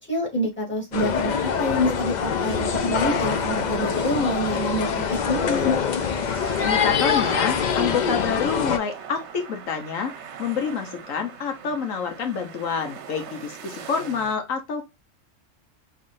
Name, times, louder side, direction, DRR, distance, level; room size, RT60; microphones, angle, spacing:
voice 1, 0.1-5.8, equal, 10° left, -2 dB, 2.4 m, -27 dB
sound 1, 0.9-8.8, left 6 dB, 55° left, 0.5 m, -24 dB
sound 2, 2.3-14.4, right 7 dB, 65° right, 0.9 m, -40 dB
voice 2, 6.6-10.1 10.4-14.9, left 6 dB, 85° left, 5 dB, 1.3 m, -27 dB
5.5 x 3.2 x 2.5 m, 0.24 s
omnidirectional pair, 1.3 m